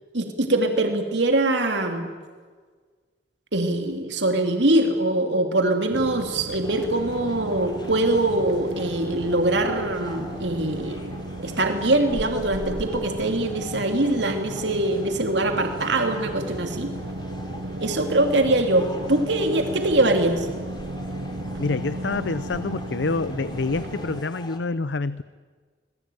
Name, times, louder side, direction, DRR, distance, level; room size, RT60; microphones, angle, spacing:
voice 1, 0.1-2.1 3.5-11.2 11.4-16.9 17.8-20.5, right 2 dB, 85° right, 4 dB, 3.0 m, -23 dB
sound 1, 5.9-24.2, right 1 dB, 65° right, 0.9 m, -35 dB
sound 2, 6.6-24.6, left 1 dB, 25° left, 2.8 m, -43 dB
voice 2, 21.6-25.2, left 3 dB, 90° left, 15 dB, 0.7 m, -27 dB
27.0 x 21.0 x 9.3 m, 1.5 s
head